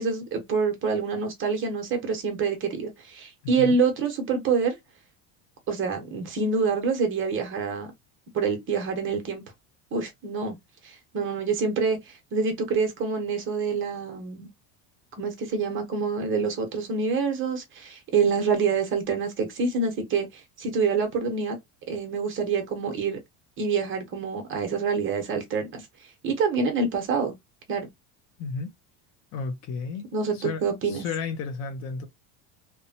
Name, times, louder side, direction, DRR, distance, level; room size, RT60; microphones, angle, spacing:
voice 1, 0.0-4.8 5.7-7.9 8.3-9.4 9.9-10.6 10.8-14.5 15.2-21.6 21.9-23.2 23.6-25.9 26.2-27.4 27.7-27.9 30.1-31.0, right 5 dB, 30° right, 0.8 m, -26 dB
voice 2, 28.4-28.7 29.3-32.1, left 4 dB, 45° left, 0.5 m, -33 dB
2.9 x 2.2 x 2.7 m
cardioid pair, 155°, 41 cm